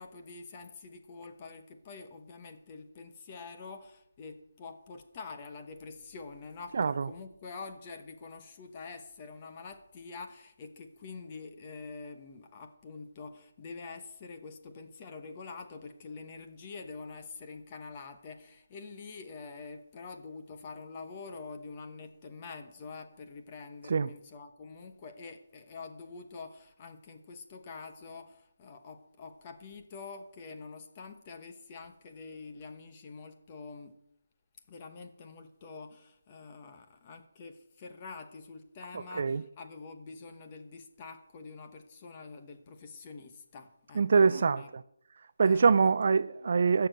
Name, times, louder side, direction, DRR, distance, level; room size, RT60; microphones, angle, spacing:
voice 1, 0.0-34.0 34.7-44.7 45.4-45.9, left 4 dB, 20° left, 1.0 m, -46 dB
voice 2, 6.7-7.1 23.9-24.1 38.9-39.4 44.0-44.6 45.4-46.9, right 5 dB, 40° right, 0.4 m, -24 dB
16.0 x 6.9 x 7.8 m
hypercardioid pair, 175°, 0 cm